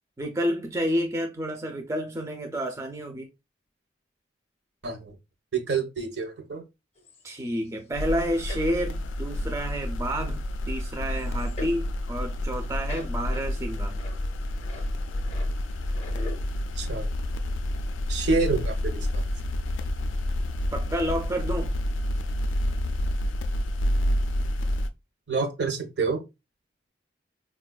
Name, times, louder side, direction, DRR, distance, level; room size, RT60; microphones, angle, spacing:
voice 1, 0.2-3.3 7.2-14.0 20.7-21.7, equal, 15° right, 0.4 m, -30 dB
voice 2, 5.5-6.6 16.8-17.1 18.1-19.2 25.3-26.2, right 4 dB, 65° right, 0.7 m, -28 dB
sound 1, 7.0-7.8 8.5-8.7 9.4-9.5 9.8-9.9 10.2-10.3 11.2-11.9 12.6-16.4, left 2 dB, 35° left, 0.6 m, -44 dB
sound 2, 7.9-24.9, left 1 dB, 85° left, 0.3 m, -29 dB
4.3 x 2.2 x 2.3 m
head